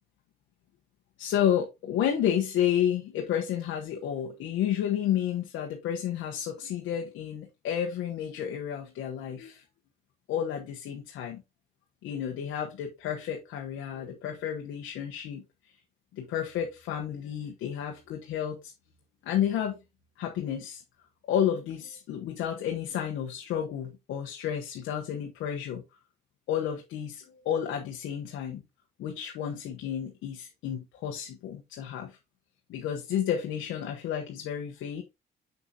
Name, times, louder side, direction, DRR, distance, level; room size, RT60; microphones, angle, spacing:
voice 1, 1.2-9.6 10.3-11.4 12.0-15.4 16.1-18.7 19.2-19.8 20.2-20.8 21.3-25.8 26.5-28.6 29.0-32.2 32.7-35.0, left 9 dB, 90° left, 1.2 m, -31 dB
6.9 x 6.3 x 2.9 m
cardioid pair, 90°, 20 cm